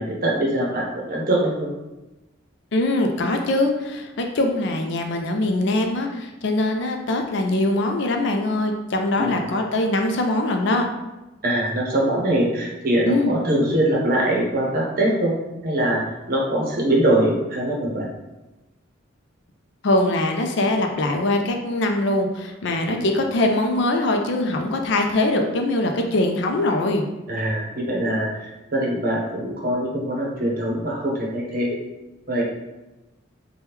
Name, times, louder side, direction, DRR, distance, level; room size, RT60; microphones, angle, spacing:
voice 1, 0.0-1.7 9.2-9.4 11.4-15.4 15.6-16.0 16.3-18.1 22.9-23.1 27.3-31.7 32.3-32.4, right 1 dB, 45° right, -2 dB, 0.7 m, -22 dB
voice 2, 2.7-10.8 13.1-13.3 19.8-27.0, left 2 dB, 60° left, 4 dB, 0.4 m, -22 dB
2.9 x 2.2 x 3.4 m, 1.0 s
head